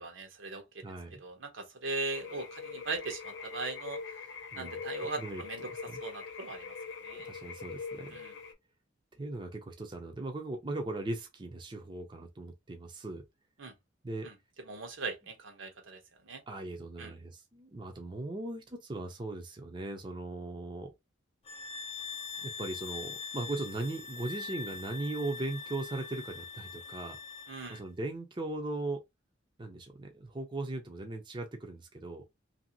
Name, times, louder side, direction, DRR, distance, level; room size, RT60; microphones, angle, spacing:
voice 1, 0.0-0.8 1.2-4.2 4.6-7.3 8.1-8.3 13.6-13.7 14.2-16.4 17.0-17.1 27.5-27.8, right 3 dB, 80° right, 0.9 m, -40 dB
voice 2, 0.8-1.2 4.5-4.8 5.2-5.4 5.9-6.0 7.1-8.2 9.2-13.2 14.0-14.3 16.5-20.9 22.4-27.2 27.7-29.0 29.6-32.2, right 2 dB, 25° right, 0.5 m, -38 dB
sound 1, 2.1-8.5, left 5 dB, 65° left, 0.8 m, -43 dB
sound 2, 21.4-27.9, left 5 dB, 30° left, 0.5 m, -43 dB
3.0 x 2.7 x 2.7 m
head